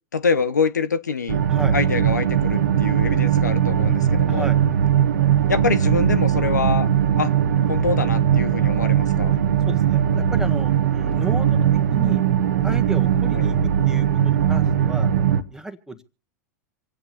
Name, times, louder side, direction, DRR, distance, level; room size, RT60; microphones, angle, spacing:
voice 1, 0.1-1.4 1.7-4.5 5.5-6.9 7.2-7.3 7.7-9.3 13.3-13.5, left 5 dB, 85° left, 1.0 m, -25 dB
sound 1, 1.3-15.4, right 9 dB, 70° right, 1.2 m, -19 dB
voice 2, 4.3-4.6 9.7-12.2 12.6-13.6 13.8-15.1 15.5-16.0, right 2 dB, 5° right, 1.6 m, -34 dB
26.0 x 8.9 x 4.3 m
hypercardioid pair, 95°, 9 cm